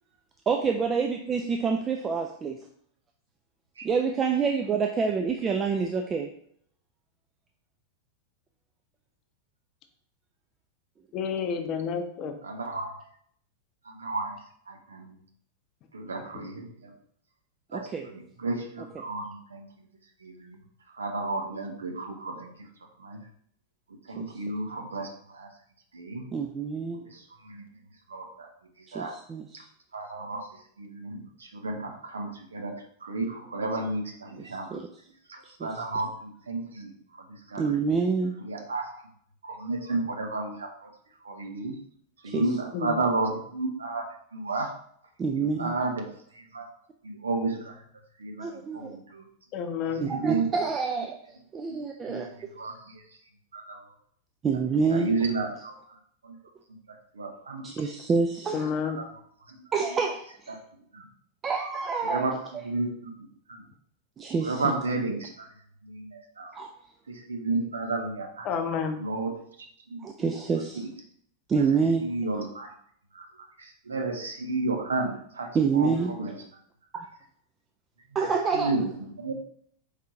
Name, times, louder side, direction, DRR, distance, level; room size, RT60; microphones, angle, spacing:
voice 1, 0.5-2.5 3.8-6.3 17.7-18.0 26.3-27.0 28.9-29.5 34.7-34.8 35.6-35.7 37.6-38.3 42.2-42.4 45.2-45.7 48.4-49.0 50.0-51.2 51.5-52.3 54.4-55.1 57.6-58.7 59.7-60.5 61.4-62.3 64.2-64.6 66.5-66.7 70.0-70.8 71.5-72.0 75.5-76.1 78.1-78.7, right 5 dB, 20° right, 3 dB, 0.4 m, -27 dB
voice 2, 11.1-12.3 42.7-43.0 49.5-50.1 58.5-59.0 68.4-69.0, left 6 dB, 35° left, 6 dB, 0.6 m, -30 dB
voice 3, 12.4-13.0 13.8-14.4 14.7-15.2 15.9-16.9 17.7-19.9 20.2-20.6 20.9-22.7 23.0-23.2 24.0-25.5 25.9-26.3 26.9-27.6 28.1-28.5 28.8-29.1 29.5-29.6 29.9-32.7 33.0-34.8 35.3-37.8 38.4-39.1 39.4-40.9 41.2-41.7 42.2-44.1 44.3-44.7 45.3-46.1 46.3-46.7 47.0-47.8 48.2-49.2 49.9-50.5 51.0-51.1 51.7-51.8 52.1-53.0 53.5-53.8 54.7-56.0 56.2-56.4 56.9-57.9 58.6-59.1 59.5-59.6 60.5-60.6 60.9-61.1 62.0-63.7 64.4-65.5 65.8-66.5 67.1-68.5 69.0-69.3 69.9-70.3 70.7-70.9 72.0-72.7 73.1-76.4 78.1-79.3, right 3 dB, 70° right, 3 dB, 0.7 m, -33 dB
5.0 x 3.3 x 2.8 m, 0.65 s
figure-of-eight pair, 90°, 0 cm